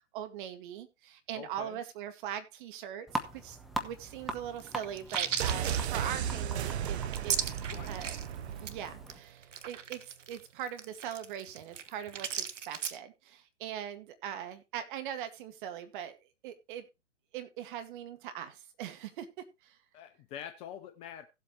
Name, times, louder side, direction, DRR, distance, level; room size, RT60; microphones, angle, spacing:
voice 1, 0.1-7.5 7.9-8.2 8.6-16.2 16.4-16.9 17.3-19.3 19.6-19.8, right 10 dB, 40° right, 1.9 m, -41 dB
voice 2, 1.3-1.8 7.6-8.1 19.9-21.3, left 10 dB, 15° left, 0.5 m, -45 dB
sound 1, 3.1-9.2, equal, ahead, 0.9 m, -42 dB
sound 2, 4.6-8.3 8.6-8.7 9.1-9.2 9.4-13.0, right 7 dB, 75° right, 1.3 m, -36 dB
sound 3, 5.4-9.2 9.4-9.5, right 9 dB, 60° right, 0.9 m, -35 dB
16.5 x 7.9 x 3.0 m
hypercardioid pair, 125°, 37 cm